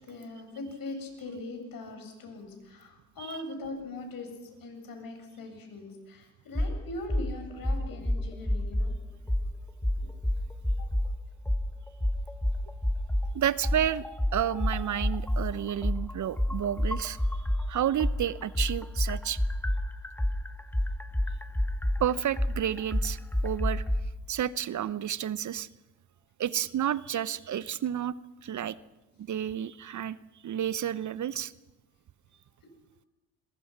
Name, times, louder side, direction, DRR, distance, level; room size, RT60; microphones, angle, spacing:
voice 1, 0.0-4.3 4.6-9.0 10.8-10.9, left 2 dB, 55° left, 5 dB, 7.7 m, -41 dB
sound 1, 6.5-6.7 7.1-7.3 7.6-8.9 9.3-9.5 9.8-11.1 11.5-11.6 12.0-13.3 13.6-17.6 18.0-24.0, left 1 dB, 5° left, 1.7 m, -27 dB
voice 2, 13.3-14.0 14.3-17.2 17.7-19.4 22.0-23.8 24.3-25.7 26.4-28.1 28.4-28.8 29.2-30.2 30.4-31.5, right 10 dB, 45° right, 18 dB, 0.9 m, -30 dB
27.0 x 22.5 x 6.0 m, 1.0 s
hypercardioid pair, 50°, 41 cm